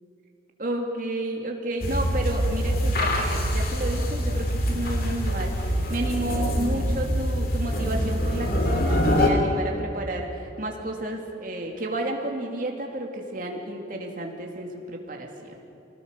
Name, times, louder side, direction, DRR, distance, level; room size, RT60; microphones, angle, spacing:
voice 1, 0.6-15.6, right 1 dB, 45° right, 1 dB, 2.5 m, -31 dB
sound 1, 1.8-9.3, equal, 50° left, 2.6 m, -25 dB
26.0 x 18.5 x 6.7 m, 2.9 s
head